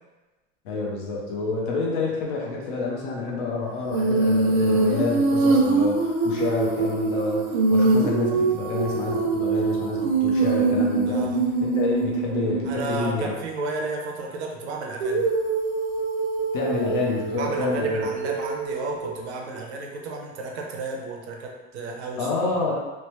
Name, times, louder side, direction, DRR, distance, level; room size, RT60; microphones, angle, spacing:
voice 1, 0.6-11.2 11.6-13.3 16.5-18.1 22.2-22.7, left 3 dB, 40° left, -2 dB, 0.6 m, -28 dB
Female singing, 3.9-12.8 15.0-19.2, right 3 dB, 90° right, 0.8 m, -23 dB
voice 2, 11.1-11.4 12.6-15.3 17.3-22.3, right 3 dB, 60° right, 0 dB, 0.6 m, -32 dB
3.2 x 2.1 x 2.9 m, 1.2 s
supercardioid pair, 165°, 38 cm